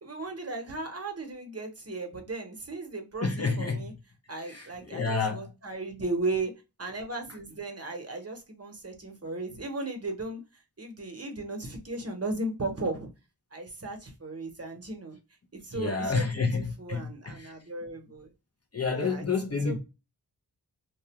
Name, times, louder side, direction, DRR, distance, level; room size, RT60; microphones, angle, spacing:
voice 1, 0.0-3.9 4.3-6.5 6.8-10.4 10.8-13.1 13.5-15.2 15.6-16.5 16.8-18.3 18.9-19.2 19.6-19.8, right 2 dB, 35° right, 0.8 m, -36 dB
voice 2, 3.2-3.9 4.5-5.5 15.7-17.1 17.4-17.5 18.7-19.8, left 4 dB, 40° left, 0.6 m, -29 dB
2.4 x 2.1 x 2.8 m
wide cardioid pair, 65°, 41 cm